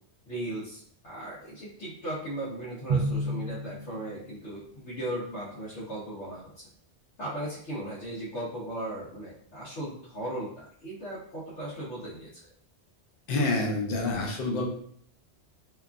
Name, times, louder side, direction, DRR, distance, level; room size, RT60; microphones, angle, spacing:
voice 1, 0.3-6.5 7.2-12.3, right 1 dB, 85° left, -10 dB, 1.2 m, -37 dB
Drum, 2.9-4.6, right 2 dB, 60° right, 0.5 m, -31 dB
voice 2, 13.3-14.7, left 2 dB, 60° left, -1 dB, 0.8 m, -27 dB
2.9 x 2.3 x 2.4 m, 0.62 s
omnidirectional pair, 1.2 m